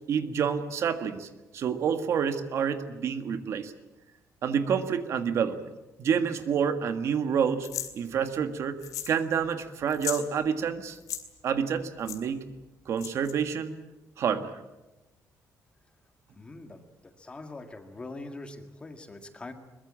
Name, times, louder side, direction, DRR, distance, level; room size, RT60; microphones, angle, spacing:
voice 1, 0.1-3.7 4.4-5.7 6.0-7.7 7.9-8.8 9.1-11.0 11.4-12.4 12.8-13.7 14.2-14.6, right 7 dB, 50° right, 9 dB, 1.6 m, -28 dB
sound 1, 7.6-7.9 8.8-9.2 9.4-9.5 9.9-10.2 10.9-11.2 12.1-12.2 13.0-13.3, left 11 dB, 70° left, 2.5 m, -35 dB
voice 2, 16.4-19.5, left 2 dB, 20° left, 7 dB, 1.8 m, -43 dB
22.5 x 21.5 x 8.8 m, 1.0 s
cardioid pair, 175°, 6 cm